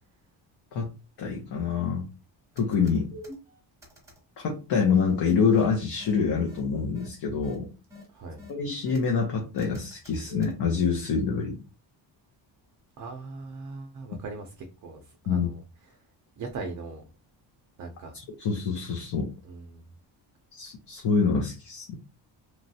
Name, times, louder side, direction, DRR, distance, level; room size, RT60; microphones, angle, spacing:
voice 1, 1.2-2.0 2.6-3.1 4.4-7.7 8.5-11.6 15.3-15.5 18.1-19.3 20.5-22.0, left 5 dB, 60° left, 0 dB, 0.7 m, -26 dB
sound 1, 2.6-3.4 3.8-4.2 5.5-5.7 6.0-6.1 6.5-6.6 7.0-7.1 7.4-7.6 7.9-8.0 8.4-9.1 9.6-10.5, equal, 5° right, 0.9 m, -43 dB
voice 2, 8.1-8.4 13.0-16.0 16.4-17.0 17.8-18.1 19.4-19.8, right 3 dB, 40° right, 4 dB, 0.5 m, -40 dB
3.0 x 2.3 x 2.7 m, 0.31 s
cardioid pair, 160°, 47 cm